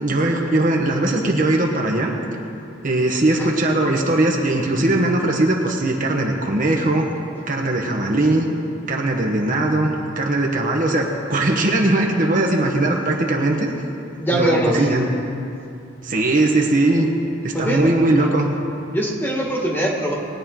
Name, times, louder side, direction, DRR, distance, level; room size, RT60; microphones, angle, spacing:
voice 1, 0.0-2.1 2.8-7.1 7.5-8.4 8.9-13.7 14.3-15.1 16.0-17.1 17.4-18.5, right 2 dB, 45° right, 1 dB, 1.2 m, -19 dB
voice 2, 14.2-15.1 17.5-17.9 18.9-20.1, right 1 dB, 10° left, -2 dB, 1.7 m, -22 dB
20.5 x 9.5 x 3.8 m, 2.6 s
head